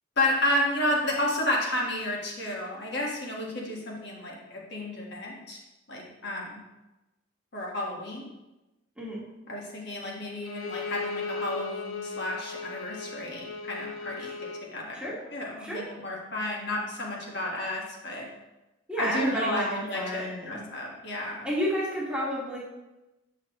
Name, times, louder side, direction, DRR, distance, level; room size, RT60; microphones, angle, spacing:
voice 1, 0.2-5.6 5.9-6.6 7.5-8.2 9.5-14.3 14.7-15.0 15.3-18.3 19.0-21.5, left 1 dB, 55° left, -2 dB, 1.6 m, -31 dB
Bowed string instrument, 10.4-14.7, left 4 dB, 75° left, 0.7 m, -37 dB
voice 2, 18.9-20.6 21.4-22.6, equal, 5° right, -7 dB, 1.5 m, -31 dB
8.3 x 5.8 x 3.0 m, 1.0 s
head